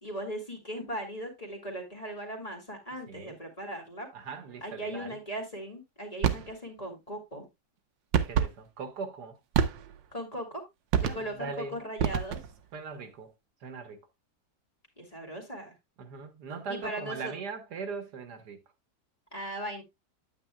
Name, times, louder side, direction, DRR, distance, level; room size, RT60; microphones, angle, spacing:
voice 1, 0.0-4.1 4.6-7.5 10.1-10.6 11.0-12.4 15.0-15.7 16.7-17.3 19.3-19.8, right 1 dB, 20° left, 2.1 m, -38 dB
voice 2, 4.1-5.2 8.2-9.4 11.0-11.8 12.7-13.3 13.6-14.0 16.0-18.6, right 5 dB, 70° right, 1.5 m, -40 dB
sound 1, 6.2-6.5 8.1-8.6 9.5-10.1 10.9-11.4 12.0-12.6, right 8 dB, 85° right, 1.5 m, -27 dB
8.9 x 8.9 x 2.2 m
omnidirectional pair, 1.9 m